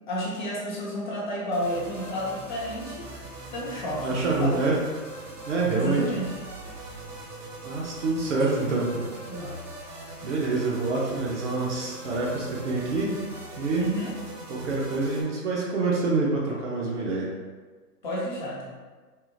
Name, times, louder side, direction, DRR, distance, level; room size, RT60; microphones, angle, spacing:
voice 1, 0.1-3.1 3.5-4.9 5.8-6.3 8.3-8.8 9.3-9.6 13.8-14.1 18.0-18.7, equal, 30° left, -4 dB, 0.5 m, -31 dB
sound 1, 1.5-15.2, right 1 dB, 80° right, 0.9 m, -41 dB
voice 2, 4.0-4.8 5.5-6.0 7.6-9.0 10.2-13.2 13.6-13.9 14.5-17.3, right 3 dB, 50° right, -4 dB, 0.7 m, -26 dB
3.6 x 2.0 x 2.6 m, 1.3 s
hypercardioid pair, 135°, 47 cm